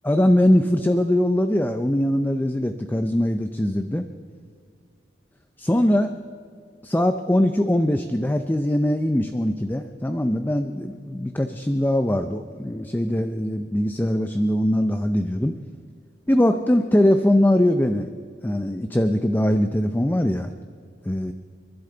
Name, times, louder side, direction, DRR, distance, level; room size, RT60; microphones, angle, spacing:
voice 1, 0.0-4.1 5.6-6.2 6.8-15.6 16.3-18.1 18.4-20.5 21.0-21.3, left 1 dB, 10° left, 8 dB, 0.5 m, -21 dB
29.5 x 11.5 x 3.9 m, 2.2 s
head